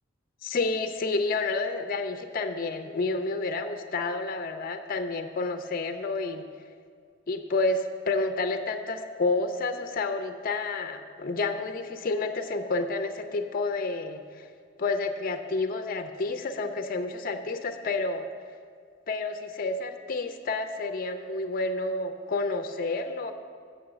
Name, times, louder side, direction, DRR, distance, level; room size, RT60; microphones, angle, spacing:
voice 1, 0.4-6.4 7.3-14.5 14.8-18.3 19.1-23.3, left 3 dB, 45° left, 7 dB, 0.5 m, -30 dB
7.0 x 6.2 x 7.6 m, 2.1 s
head